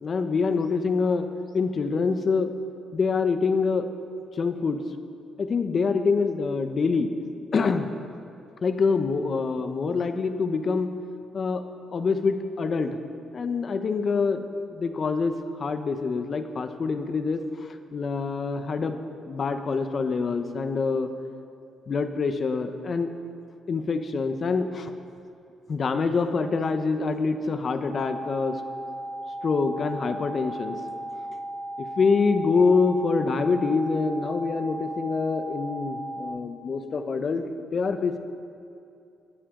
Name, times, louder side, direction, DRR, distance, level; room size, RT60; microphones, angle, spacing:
voice 1, 0.0-1.3 1.5-2.5 2.9-3.9 4.4-4.8 5.4-7.1 7.5-7.9 8.6-10.9 11.3-11.6 11.9-13.0 13.3-14.4 14.7-19.0 19.2-21.1 21.9-23.1 23.7-24.9 25.7-28.6 29.4-30.8 31.8-37.4 37.7-38.2, left 4 dB, 45° left, 8 dB, 1.0 m, -25 dB
sound 1, 27.8-36.3, right 1 dB, 30° left, 4.0 m, -36 dB
19.0 x 12.0 x 3.9 m, 2.6 s
cardioid pair, 90°, 0 cm